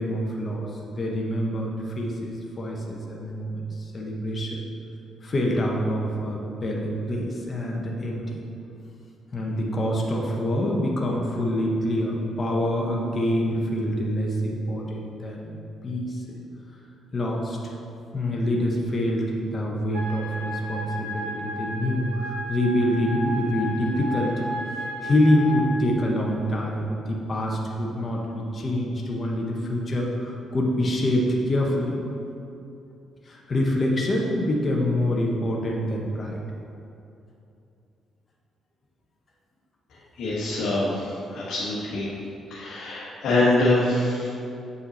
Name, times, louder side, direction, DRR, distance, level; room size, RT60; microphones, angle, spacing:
voice 1, 0.0-4.6 5.2-8.4 9.3-15.6 15.8-16.2 17.1-17.6 18.1-24.4 25.0-32.0 33.2-36.4, left 1 dB, 35° left, -1 dB, 1.1 m, -26 dB
sound 1, 19.9-25.6, equal, 70° right, 1.8 m, -34 dB
voice 2, 40.2-42.1 42.5-44.3, left 2 dB, 70° left, -7 dB, 1.4 m, -24 dB
8.1 x 5.6 x 4.2 m, 2.7 s
cardioid pair, 90°, 0 cm